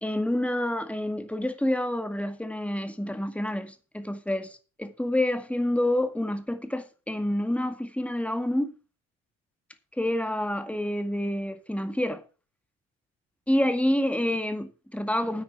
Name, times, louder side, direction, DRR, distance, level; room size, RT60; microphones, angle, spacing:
voice 1, 0.0-8.7 10.0-12.2 13.5-15.4, left 1 dB, 5° left, 2.0 m, -28 dB
9.8 x 9.2 x 5.9 m
figure-of-eight pair, 50°, 36 cm